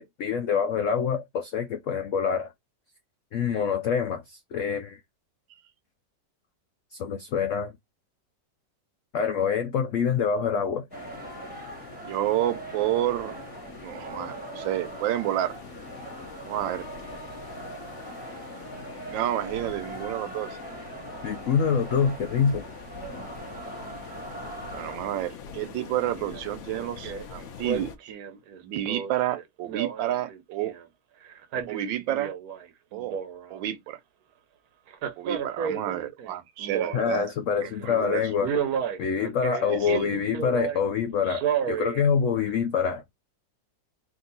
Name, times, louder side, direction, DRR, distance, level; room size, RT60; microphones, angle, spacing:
voice 1, 0.0-2.5 3.3-5.0 6.9-7.7 9.1-10.9 21.2-22.6 36.9-38.5 39.0-43.0, left 6 dB, 85° left, 0.6 m, -26 dB
sound 1, 10.9-28.0, left 6 dB, 60° left, 0.8 m, -44 dB
sound 2, 10.9-25.0, right 2 dB, 5° right, 0.8 m, -41 dB
voice 2, 12.0-13.4 13.8-15.6 16.4-16.9 19.1-20.5 24.7-28.1 28.6-30.7 31.7-32.3 32.9-33.2 33.5-34.0 35.2-37.3 37.6-38.2 39.7-40.1, right 13 dB, 90° right, 1.4 m, -30 dB
Male speech man speaking, 26.2-26.4 26.7-27.2 27.6-30.9 31.3-32.7 32.9-33.7 34.9-37.3 37.7-38.0 38.4-40.8 41.3-42.0 42.5-42.6, right 8 dB, 65° right, 1.0 m, -32 dB
3.6 x 2.7 x 3.9 m
omnidirectional pair, 2.0 m